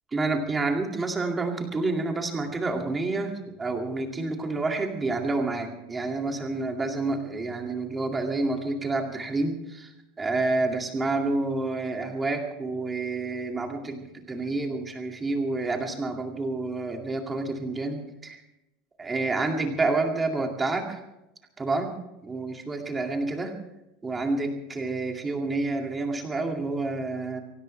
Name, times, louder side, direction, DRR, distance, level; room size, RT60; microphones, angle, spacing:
voice 1, 0.1-9.9 10.2-18.4 19.0-21.0 21.6-23.5 24.0-27.4, right 3 dB, 10° right, 2 dB, 2.3 m, -29 dB
24.5 x 18.0 x 3.3 m, 0.91 s
supercardioid pair, 175°, 0 cm